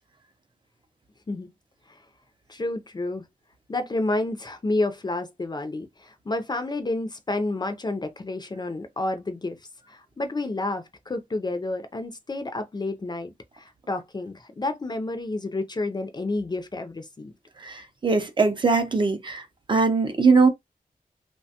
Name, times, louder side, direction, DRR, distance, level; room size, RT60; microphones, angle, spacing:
voice 1, 2.5-3.3 3.7-9.6 9.9-17.3, left 2 dB, 30° left, 0.4 m, -30 dB
voice 2, 17.6-20.5, right 4 dB, 30° right, 0.5 m, -21 dB
3.1 x 2.2 x 2.7 m
wide cardioid pair, 140°, 15 cm